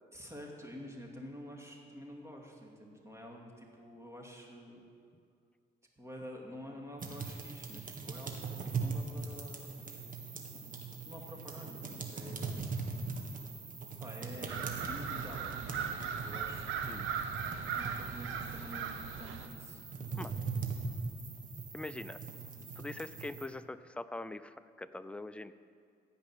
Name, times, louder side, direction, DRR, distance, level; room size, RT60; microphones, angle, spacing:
voice 1, 0.1-4.8 6.0-9.7 11.0-12.7 14.0-16.7 17.8-19.8, equal, 15° right, 0 dB, 2.4 m, -49 dB
sound 1, 7.0-23.5, right 4 dB, 45° right, 1.7 m, -41 dB
sound 2, 14.5-19.5, right 7 dB, 85° right, 0.9 m, -38 dB
voice 2, 21.7-22.2 22.8-25.5, left 2 dB, 5° left, 12 dB, 0.4 m, -43 dB
16.0 x 5.4 x 9.1 m, 2.2 s
cardioid pair, 90°, 20 cm